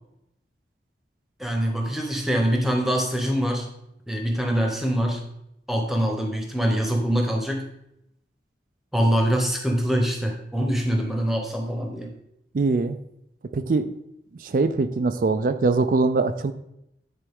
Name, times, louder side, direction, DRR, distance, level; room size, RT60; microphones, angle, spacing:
voice 1, 1.4-3.7 4.1-5.3 5.7-7.7 8.9-12.1, equal, ahead, 2 dB, 1.0 m, -24 dB
voice 2, 12.5-13.0 13.5-13.9 14.4-16.5, right 3 dB, 50° right, 10 dB, 0.4 m, -22 dB
9.7 x 4.3 x 3.7 m, 0.79 s
head